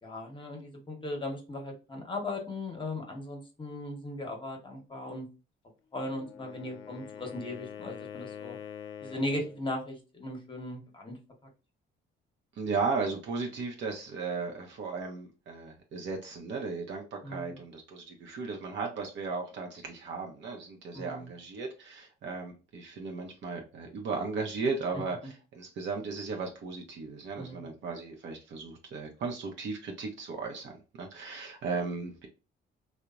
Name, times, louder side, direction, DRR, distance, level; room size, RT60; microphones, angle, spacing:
voice 1, 0.0-5.3 5.9-8.6 9.0-11.2 17.2-17.6 20.9-21.3 27.4-27.7, left 1 dB, 25° left, 2 dB, 0.8 m, -37 dB
Wind instrument woodwind instrument, 6.1-9.6, left 8 dB, 80° left, 0.4 m, -44 dB
voice 2, 12.6-30.7 31.0-32.3, right 4 dB, 65° right, 2 dB, 0.6 m, -36 dB
2.8 x 2.0 x 2.3 m, 0.32 s
cardioid pair, 90°, 20 cm